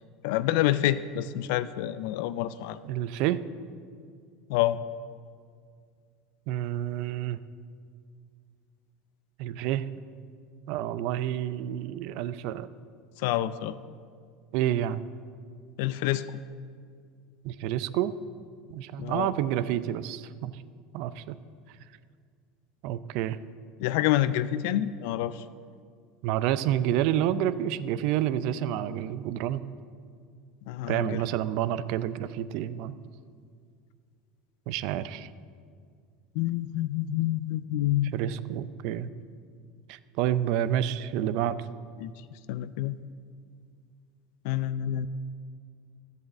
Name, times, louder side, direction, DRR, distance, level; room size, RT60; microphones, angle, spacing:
voice 1, 0.2-2.8 4.5-4.8 13.2-13.7 15.8-16.3 19.0-19.3 23.8-25.4 30.7-31.2 36.3-38.1 42.0-42.1 42.5-43.0 44.4-45.1, left 13 dB, 70° left, 15 dB, 0.4 m, -27 dB
voice 2, 2.8-3.4 6.5-7.4 9.4-9.9 10.7-12.7 14.5-15.0 17.4-18.1 18.7-20.5 20.9-21.4 22.8-23.4 26.2-29.6 30.9-32.9 34.7-35.3 38.1-39.1 39.9-41.6, right 11 dB, 65° right, 15 dB, 0.5 m, -29 dB
11.0 x 7.9 x 7.2 m, 2.2 s
hypercardioid pair, 85°, 0 cm